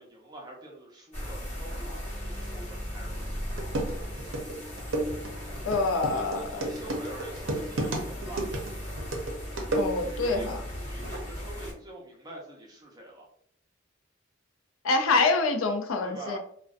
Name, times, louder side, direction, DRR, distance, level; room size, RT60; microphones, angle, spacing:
voice 1, 0.0-3.3 6.1-8.5 10.0-10.5 10.8-13.2 16.0-16.4, right 1 dB, 20° right, -2 dB, 0.6 m, -45 dB
sound 1, 1.1-11.7, equal, 35° left, 1.0 m, -37 dB
sound 2, 3.2-3.3 3.6-10.3, right 2 dB, 70° right, 0.6 m, -32 dB
voice 2, 5.6-6.6 9.7-10.6 14.8-16.4, left 3 dB, 85° left, 5 dB, 0.4 m, -26 dB
2.5 x 2.1 x 2.4 m, 0.63 s
head